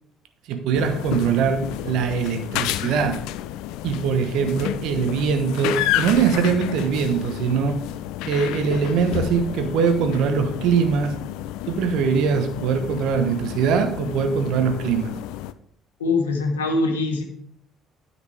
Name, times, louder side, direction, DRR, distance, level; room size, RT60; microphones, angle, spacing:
voice 1, 0.5-3.2 3.8-7.8 8.2-11.1 11.7-15.1, right 6 dB, 60° right, 7 dB, 1.2 m, -22 dB
sound 1, 0.7-15.5, left 13 dB, 65° left, 0.4 m, -30 dB
voice 2, 16.0-17.2, left 3 dB, 80° left, 3 dB, 1.2 m, -22 dB
9.6 x 8.0 x 3.5 m, 0.64 s
figure-of-eight pair, 50°, 0 cm